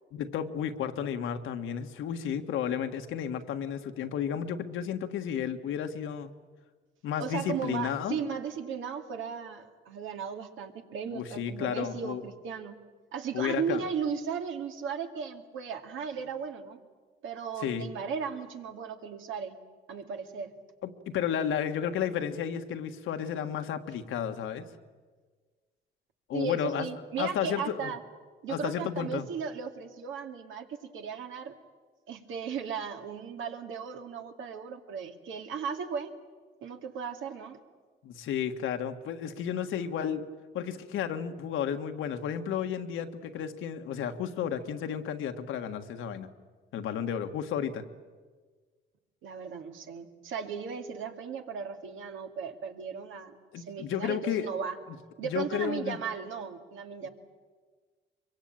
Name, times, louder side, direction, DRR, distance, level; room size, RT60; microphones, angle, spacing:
voice 1, 0.1-6.3 7.0-8.2 11.1-12.2 13.3-13.8 17.6-17.9 20.8-24.6 26.3-26.9 27.2-27.9 28.5-29.2 38.0-40.2 40.5-46.3 46.7-47.9 53.5-54.5 55.2-56.0, left 8 dB, 85° left, 7 dB, 1.6 m, -32 dB
voice 2, 7.2-12.8 13.1-16.8 17.2-19.5 19.9-20.5 26.3-28.0 28.4-31.6 32.1-36.1 36.6-37.6 49.2-54.8 55.2-57.1, right 6 dB, 80° right, 5 dB, 2.3 m, -36 dB
24.0 x 23.0 x 8.9 m, 1.5 s
cardioid pair, 90°, 20 cm